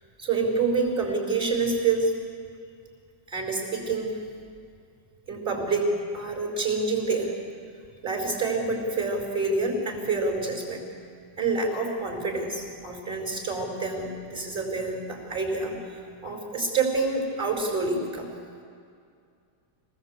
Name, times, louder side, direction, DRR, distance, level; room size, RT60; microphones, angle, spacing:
voice 1, 0.2-2.1 3.3-4.2 5.3-7.3 8.0-10.8 11.4-18.3, right 3 dB, 25° right, 0 dB, 5.2 m, -27 dB
26.0 x 19.5 x 8.2 m, 2.3 s
omnidirectional pair, 2.2 m